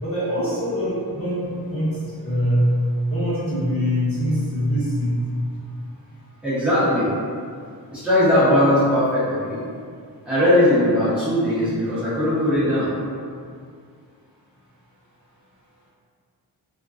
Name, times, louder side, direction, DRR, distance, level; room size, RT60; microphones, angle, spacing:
voice 1, 0.0-2.7 3.1-5.2 5.6-5.7, equal, 35° left, -11 dB, 0.9 m, -23 dB
voice 2, 6.4-7.1 7.9-9.6 10.3-12.9, left 1 dB, 5° right, -13 dB, 0.8 m, -19 dB
2.3 x 2.2 x 2.4 m, 2.2 s
wide cardioid pair, 95°, 41 cm